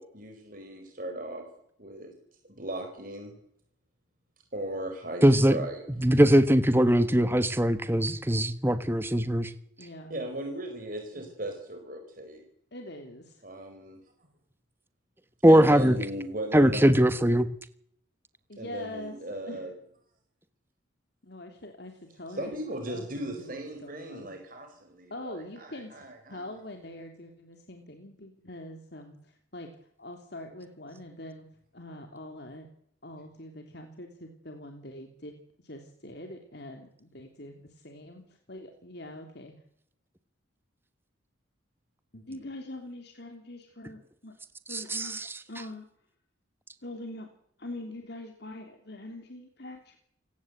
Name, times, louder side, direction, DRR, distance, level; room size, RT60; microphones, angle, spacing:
voice 1, 0.0-1.5 1.8-2.1 2.5-3.3 4.5-5.8 10.1-12.4 13.4-14.3 15.4-16.9 18.6-19.7 22.3-26.5, right 1 dB, 45° right, 4 dB, 4.6 m, -37 dB
voice 2, 5.2-5.5 6.0-9.5 15.4-16.0 16.5-17.5 44.7-45.3, equal, 10° right, 11 dB, 1.2 m, -21 dB
voice 3, 9.8-10.2 12.7-13.4 18.5-19.6 21.2-22.5 22.9-24.3 25.1-29.7 30.0-31.5 31.7-32.7 33.0-35.3 35.6-38.2 38.5-39.5 42.1-44.3 44.7-45.2 45.5-45.9 46.8-47.3 47.6-50.0, left 1 dB, 55° left, 4 dB, 3.1 m, -43 dB
28.5 x 18.0 x 8.1 m, 0.71 s
head